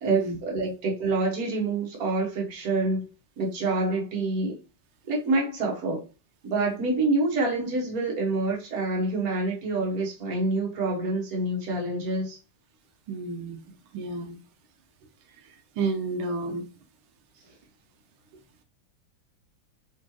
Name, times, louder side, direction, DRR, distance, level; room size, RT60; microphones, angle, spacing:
voice 1, 0.0-3.0 3.4-4.6 5.0-6.0 6.4-12.4, right 2 dB, 50° right, 1.5 m, -27 dB
voice 2, 13.1-14.4 15.8-16.7, right 3 dB, 85° right, 1.6 m, -31 dB
4.3 x 3.7 x 2.9 m
omnidirectional pair, 2.3 m